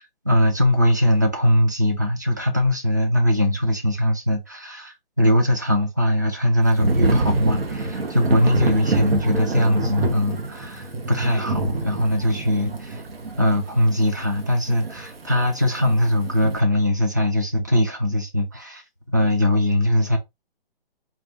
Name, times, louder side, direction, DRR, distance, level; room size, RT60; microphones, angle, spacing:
voice 1, 0.0-13.0 13.4-18.8 19.1-20.2, equal, 20° right, 0.4 m, -21 dB
Thunder / Rain, 6.8-16.6, right 2 dB, 80° right, 1.2 m, -26 dB
4.2 x 2.5 x 3.6 m
hypercardioid pair, 175°, 29 cm